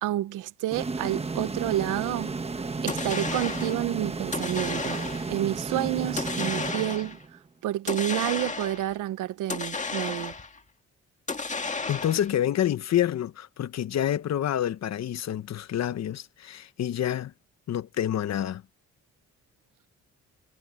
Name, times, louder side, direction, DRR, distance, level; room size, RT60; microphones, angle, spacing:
voice 1, 0.0-5.0 5.3-7.2 7.6-10.3, right 14 dB, 90° right, 1.1 m, -29 dB
sound 1, 0.7-7.5, right 4 dB, 20° right, 1.2 m, -33 dB
sound 2, 2.9-3.8 4.3-5.4 6.2-7.2 7.9-8.9 9.5-10.6 11.3-12.4, left 4 dB, 25° left, 1.9 m, -33 dB
voice 2, 11.9-17.3 17.7-18.6, left 11 dB, 60° left, 1.1 m, -28 dB
cardioid pair, 90°, 30 cm